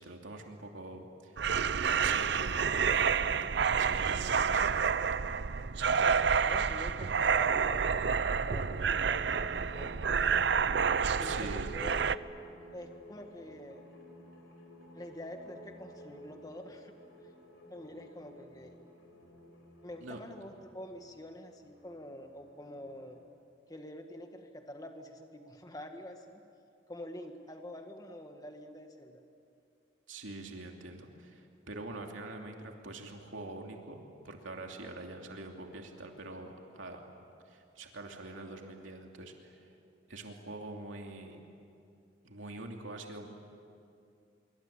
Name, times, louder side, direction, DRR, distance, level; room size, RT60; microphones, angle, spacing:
voice 1, 0.0-1.4 1.8-5.2 11.2-11.7 20.0-20.2 30.1-37.0 37.5-39.6 40.1-41.4 42.2-43.3, right 2 dB, 85° right, 2 dB, 2.8 m, -45 dB
sound 1, 1.4-12.2, right 6 dB, 60° right, 0.6 m, -29 dB
voice 2, 6.4-10.0 11.2-11.9 12.7-13.8 14.9-16.9 17.7-18.8 19.8-23.2 23.7-26.4 26.9-29.2, left 1 dB, 20° left, 5 dB, 1.7 m, -46 dB
sound 2, 8.4-23.2, equal, 85° left, 4.9 m, -52 dB
25.5 x 24.5 x 8.9 m, 2.5 s
head